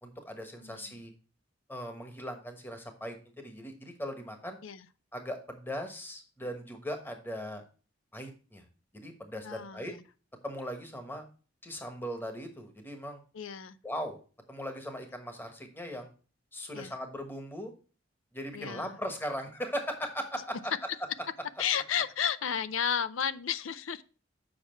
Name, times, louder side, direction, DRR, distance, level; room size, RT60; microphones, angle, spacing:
voice 1, 0.0-1.1 1.7-4.6 5.1-7.6 8.1-8.6 8.9-9.9 10.4-11.2 11.6-13.2 13.8-14.2 14.5-16.1 16.5-17.7 18.3-20.7, equal, 10° left, 1.2 m, -39 dB
voice 2, 0.6-1.0 4.6-4.8 9.4-10.0 13.3-13.8 16.7-16.9 18.5-19.0 21.6-24.0, left 8 dB, 80° left, 0.5 m, -33 dB
7.5 x 5.9 x 4.4 m
head